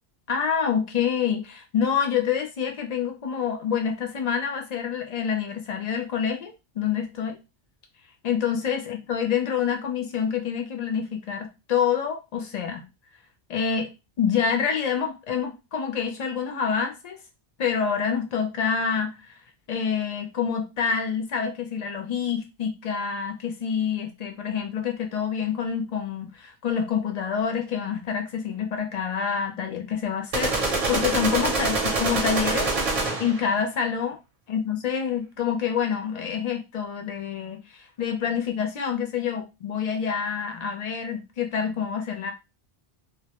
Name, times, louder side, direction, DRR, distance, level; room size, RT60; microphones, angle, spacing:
voice 1, 0.3-7.4 8.2-12.9 13.5-13.9 14.2-17.2 17.6-19.3 19.7-32.7 33.2-34.2 34.5-42.3, left 7 dB, 50° left, 0.5 m, -27 dB
sound 1, 30.3-33.5, right 3 dB, 45° right, 0.6 m, -25 dB
2.1 x 2.0 x 2.8 m
omnidirectional pair, 1.1 m